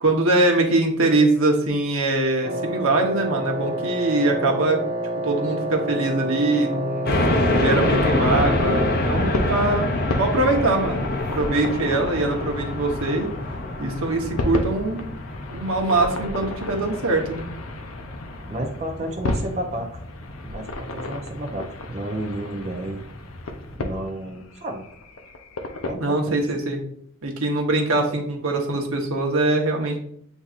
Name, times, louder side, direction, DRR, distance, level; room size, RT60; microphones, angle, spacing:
voice 1, 0.0-4.8 5.2-9.9 10.2-13.3 13.8-15.1 15.5-17.4 26.0-26.8 27.2-30.0, right 2 dB, 80° right, 2 dB, 0.9 m, -22 dB
Wind instrument woodwind instrument, 2.4-9.1, right 1 dB, 55° right, 1.0 m, -29 dB
sound 1, 7.1-23.7, left 1 dB, 45° left, 0.6 m, -27 dB
sound 2, 8.6-25.9, left 2 dB, 90° left, 0.6 m, -34 dB
voice 2, 18.5-19.9 20.4-23.1 23.7-24.9 25.8-26.4, right 1 dB, 30° right, 0 dB, 0.5 m, -31 dB
8.0 x 2.7 x 2.4 m, 0.66 s
head